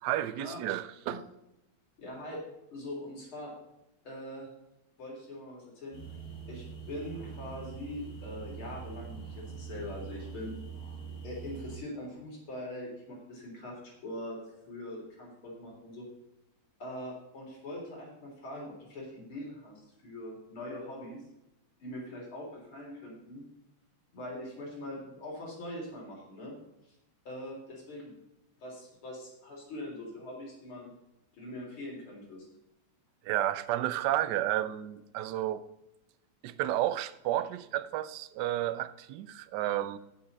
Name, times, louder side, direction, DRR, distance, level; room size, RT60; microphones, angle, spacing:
voice 1, 0.0-1.2 33.2-35.7 36.4-40.0, right 13 dB, 70° right, 1.1 m, -31 dB
voice 2, 2.0-2.4 2.7-3.5 4.0-4.5 5.0-5.9 6.5-10.5 11.2-14.4 14.7-16.1 16.8-21.2 21.8-23.4 24.1-26.5 27.2-28.1 28.6-30.9 31.3-32.5, left 1 dB, 80° left, 4.4 m, -42 dB
sound 1, 5.9-11.8, right 6 dB, 45° left, 2.9 m, -43 dB
15.5 x 5.7 x 4.1 m
omnidirectional pair, 2.3 m